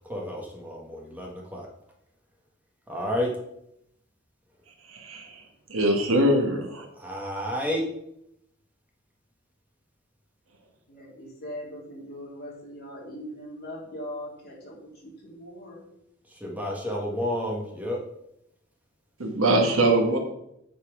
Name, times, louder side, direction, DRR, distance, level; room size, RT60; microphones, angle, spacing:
voice 1, 0.1-1.7 2.9-3.3 7.0-7.8 16.4-18.0, left 1 dB, 10° right, -1 dB, 1.5 m, -30 dB
voice 2, 4.9-5.4 5.7-6.9 19.2-20.2, right 1 dB, 85° right, 3 dB, 1.5 m, -22 dB
voice 3, 10.9-15.8, equal, 50° left, -4 dB, 3.1 m, -40 dB
8.4 x 4.3 x 4.9 m, 0.78 s
head